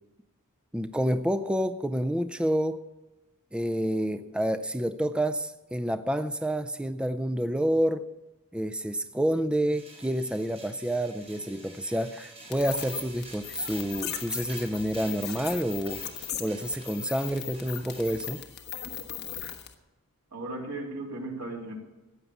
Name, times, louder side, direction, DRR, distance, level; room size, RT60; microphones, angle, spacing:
voice 1, 0.7-2.8 3.5-8.1 8.5-16.0 16.4-18.4, right 1 dB, 5° right, 0.4 m, -28 dB
sound 1, 9.7-18.4, right 2 dB, 25° right, 5.2 m, -48 dB
sound 2, 12.5-19.7, left 9 dB, 50° left, 1.4 m, -38 dB
voice 2, 20.3-21.8, right 2 dB, 90° right, 3.5 m, -36 dB
15.0 x 9.5 x 7.1 m
head